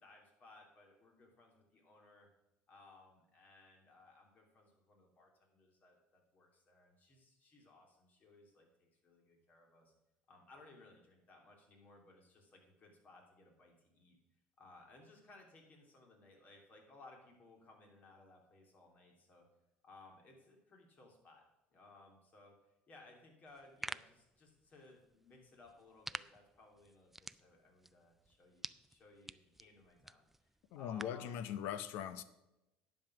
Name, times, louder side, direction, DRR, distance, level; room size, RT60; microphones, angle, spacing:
voice 1, 0.0-2.3 2.7-9.9 10.3-14.2 14.6-19.5 19.8-21.4 21.7-22.5 22.9-30.5 30.7-31.5, left 2 dB, 45° left, 1 dB, 3.0 m, -61 dB
sound 1, 23.5-31.3, right 1 dB, 5° right, 0.3 m, -51 dB
voice 2, 30.7-32.2, left 9 dB, 70° left, 14 dB, 0.7 m, -41 dB
10.5 x 5.4 x 6.2 m, 0.93 s
supercardioid pair, 85°, 4 cm